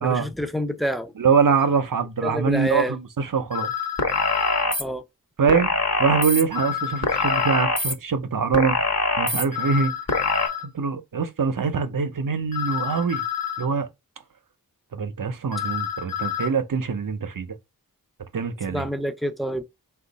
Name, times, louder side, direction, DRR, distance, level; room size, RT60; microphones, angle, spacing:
voice 1, 0.0-1.1 2.2-2.9 4.8-5.0 18.7-19.6, equal, ahead, 0.5 m, -27 dB
voice 2, 1.2-3.7 5.4-5.7 6.0-8.8 9.2-10.0 10.7-13.2 13.6-13.9 14.9-17.5 18.3-18.9, right 5 dB, 65° right, 0.7 m, -23 dB
sound 1, 1.6-1.7 3.5-4.7 6.5-7.7 9.5-10.7 12.5-13.7 15.5-16.5, left 9 dB, 70° left, 0.8 m, -29 dB
sound 2, 4.0-4.8 5.5-6.4 7.0-7.9 8.5-9.4 10.1-10.5, left 2 dB, 45° left, 1.1 m, -23 dB
4.4 x 2.3 x 3.9 m
wide cardioid pair, 55°, 36 cm